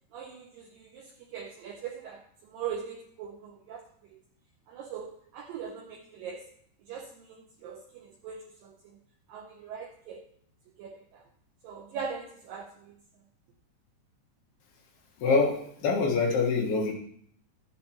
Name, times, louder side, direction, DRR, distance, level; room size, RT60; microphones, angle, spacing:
voice 1, 0.1-4.2 4.7-6.5 6.8-9.0 9.3-10.2 10.8-11.2 11.6-13.0, right 7 dB, 85° right, 2 dB, 2.0 m, -41 dB
voice 2, 15.2-16.9, left 4 dB, 70° left, -1 dB, 3.3 m, -25 dB
13.0 x 8.2 x 2.9 m, 0.65 s
omnidirectional pair, 4.9 m